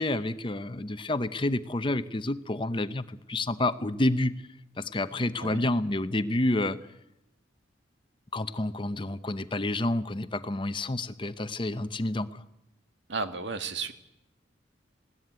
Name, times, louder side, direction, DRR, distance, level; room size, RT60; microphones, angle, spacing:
voice 1, 0.0-4.3 4.8-6.8 8.3-12.4, left 1 dB, 25° left, 12 dB, 0.7 m, -29 dB
voice 2, 13.1-13.9, right 4 dB, 70° right, 8 dB, 1.7 m, -33 dB
20.5 x 16.0 x 9.4 m, 0.88 s
head